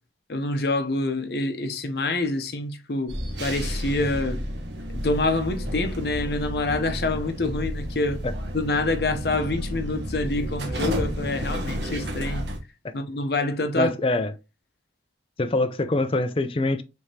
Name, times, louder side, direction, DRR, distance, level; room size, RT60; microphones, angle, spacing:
voice 1, 0.3-4.4 4.9-8.2 8.5-12.4 12.9-13.9, left 2 dB, 60° left, 0.7 m, -26 dB
sound 1, 3.1-12.6, equal, 80° right, 1.2 m, -31 dB
voice 2, 13.8-14.3 15.4-16.8, left 2 dB, 30° left, 0.4 m, -24 dB
4.8 x 3.4 x 2.8 m
head